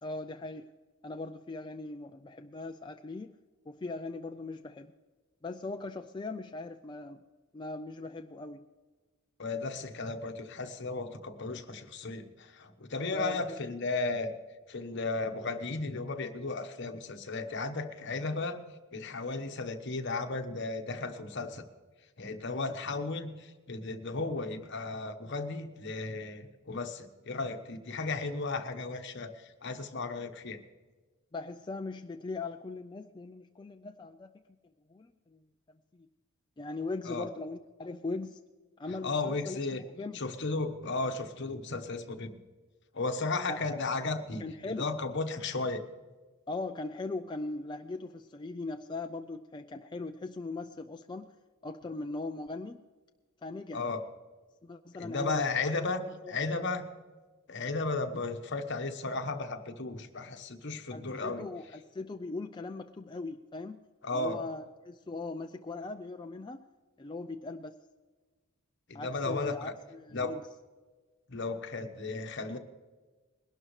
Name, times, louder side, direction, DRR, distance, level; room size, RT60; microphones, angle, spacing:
voice 1, 0.0-0.7 1.0-3.3 3.7-4.9 5.4-7.2 7.5-8.6 13.1-13.4 31.3-34.3 34.6-36.1 36.6-38.4 38.8-40.2 43.5-43.8 44.4-44.9 46.5-51.3 51.6-52.8 53.4-53.9 54.6-55.7 56.0-56.7 60.9-63.7 64.1-66.7 67.0-67.8 68.9-70.4, left 3 dB, 20° left, 5 dB, 0.4 m, -40 dB
voice 2, 9.4-14.3 14.7-18.6 18.9-21.6 22.2-30.6 37.1-37.2 39.0-39.8 40.1-42.4 42.9-45.8 53.7-54.0 55.0-56.9 57.5-61.4 64.0-64.4 68.9-69.7 70.1-70.3 71.3-72.6, left 3 dB, 55° left, 6 dB, 1.2 m, -34 dB
21.0 x 12.0 x 3.2 m, 1.3 s
head